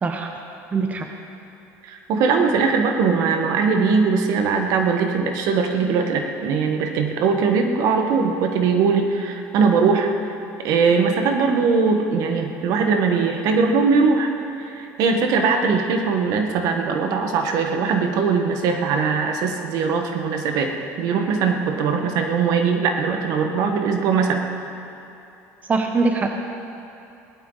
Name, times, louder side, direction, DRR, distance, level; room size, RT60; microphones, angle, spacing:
voice 1, 0.0-0.3 0.7-1.1 15.6-15.8 25.7-26.3, right 4 dB, 25° right, 4 dB, 1.0 m, -22 dB
voice 2, 1.8-10.1 10.6-14.3 14.6-20.7 21.0-24.4, right 5 dB, 65° right, 4 dB, 1.5 m, -20 dB
19.0 x 12.5 x 4.1 m, 2.9 s
cardioid pair, 120°, 6 cm